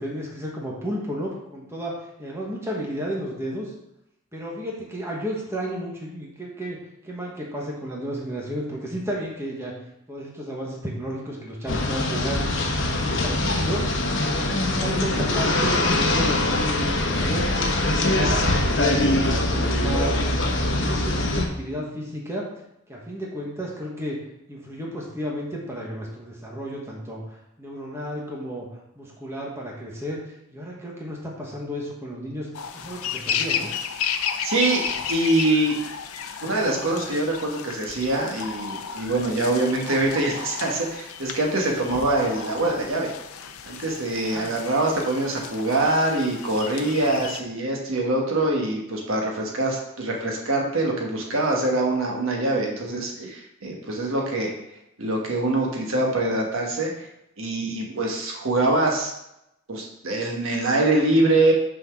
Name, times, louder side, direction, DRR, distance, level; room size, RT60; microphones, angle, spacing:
voice 1, 0.0-3.7 4.3-6.8 7.0-9.7 10.1-12.4 12.9-14.0 14.2-20.2 20.7-22.5 22.9-24.2 24.5-28.7 28.9-30.2 30.5-32.5 32.7-33.7 44.3-44.5, equal, 10° right, -3 dB, 1.4 m, -32 dB
sound 1, 11.7-21.5, left 2 dB, 60° left, 1.1 m, -23 dB
sound 2, 32.5-47.4, left 7 dB, 85° left, 0.6 m, -33 dB
voice 2, 34.4-34.8 35.1-35.8 36.4-43.1 43.6-54.5 55.0-57.1 57.4-59.1 59.7-61.5, right 2 dB, 70° right, 0 dB, 1.4 m, -24 dB
6.2 x 4.5 x 5.9 m, 0.83 s
head